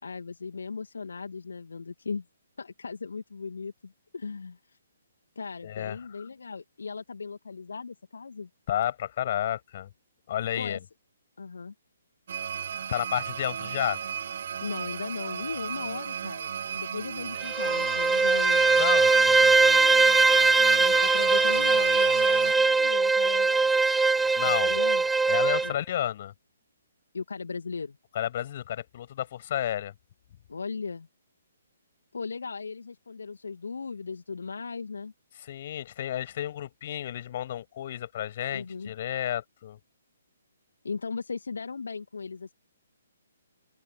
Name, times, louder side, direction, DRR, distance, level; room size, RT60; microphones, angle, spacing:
voice 1, 0.0-2.2 2.6-4.8 5.4-8.5 10.6-10.8 11.4-11.7 14.6-18.6 20.8-23.8 24.4-25.0 25.6-25.8 27.1-28.0 30.5-31.1 32.1-35.1 38.5-38.9 40.8-42.5, left 5 dB, 60° left, 2.5 m, -37 dB
voice 2, 5.6-6.0 8.7-9.9 10.3-10.8 12.9-14.0 18.8-19.6 24.4-24.8 25.3-26.3 28.2-29.9 35.4-39.8, left 11 dB, 40° left, 6.9 m, -31 dB
sound 1, 12.3-22.5, right 8 dB, 50° right, 1.1 m, -35 dB
Bowed string instrument, 17.4-25.7, right 4 dB, 5° right, 0.5 m, -21 dB
open air
figure-of-eight pair, 130°, 0 cm